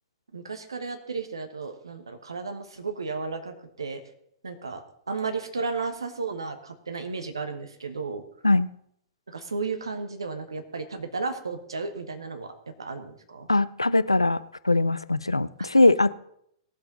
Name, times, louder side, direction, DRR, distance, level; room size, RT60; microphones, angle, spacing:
voice 1, 0.3-4.0 4.4-8.2 9.3-13.5, right 4 dB, 70° right, 7 dB, 1.3 m, -34 dB
voice 2, 13.5-16.1, left 2 dB, 85° left, 16 dB, 0.4 m, -21 dB
18.0 x 7.7 x 3.9 m, 0.71 s
figure-of-eight pair, 105°, 3 cm